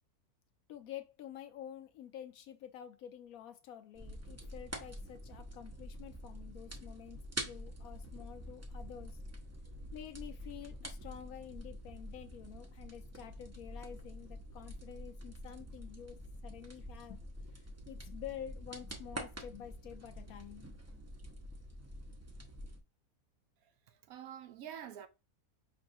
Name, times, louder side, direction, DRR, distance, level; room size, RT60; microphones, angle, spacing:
voice 1, 0.7-9.2 9.9-17.2 17.6-20.7, left 10 dB, 75° left, 1.1 m, -49 dB
sound 1, 3.9-22.8, equal, 25° right, 0.3 m, -47 dB
voice 2, 23.9-25.1, right 9 dB, 70° right, 1.0 m, -47 dB
5.3 x 3.2 x 2.6 m
omnidirectional pair, 1.6 m